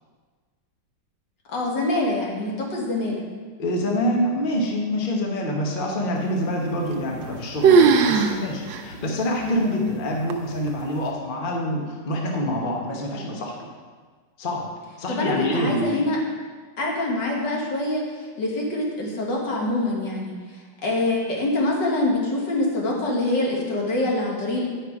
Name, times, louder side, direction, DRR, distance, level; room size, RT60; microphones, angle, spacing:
voice 1, 1.5-3.2 15.1-16.2 16.8-18.0 18.4-20.3 20.8-24.7, left 2 dB, 65° left, -2 dB, 2.1 m, -25 dB
voice 2, 3.6-13.7 14.4-14.7 15.0-15.9, equal, 35° left, -1 dB, 1.0 m, -26 dB
sound 1, 6.9-7.4 7.6-8.4 8.7-8.8 9.5-9.6 10.3-10.7, right 5 dB, 80° right, 1.4 m, -17 dB
9.4 x 5.7 x 4.8 m, 1.5 s
omnidirectional pair, 2.1 m